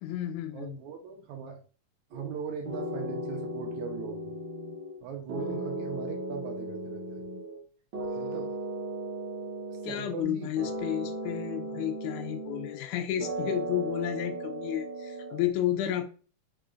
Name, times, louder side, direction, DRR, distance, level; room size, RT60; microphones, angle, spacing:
voice 1, 0.0-0.8 9.8-16.1, left 12 dB, 80° left, 7 dB, 1.9 m, -32 dB
voice 2, 0.5-1.6 2.1-4.4 5.0-7.2 8.1-8.5 9.7-10.5, right 7 dB, 75° right, 2 dB, 1.9 m, -39 dB
sound 1, 2.1-2.4 2.7-5.0 5.3-7.6 7.9-10.3 10.6-12.9 13.2-15.5, right 1 dB, 60° right, 1.3 m, -36 dB
4.9 x 3.8 x 2.4 m, 0.38 s
omnidirectional pair, 3.7 m